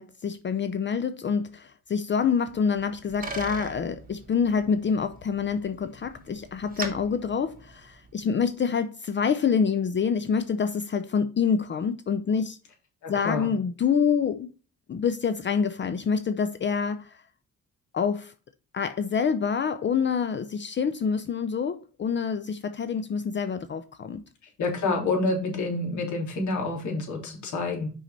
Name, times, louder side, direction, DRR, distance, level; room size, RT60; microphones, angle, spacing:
voice 1, 0.0-12.6 13.1-14.5 14.9-17.2 17.9-18.3 18.7-24.2, left 6 dB, 40° left, 0.6 m, -26 dB
Bicycle, 2.6-8.3, right 2 dB, 30° right, 2.4 m, -41 dB
voice 2, 13.0-13.5 24.6-27.9, left 3 dB, 70° left, 3.5 m, -28 dB
6.0 x 5.6 x 4.2 m
cardioid pair, 90°, 30 cm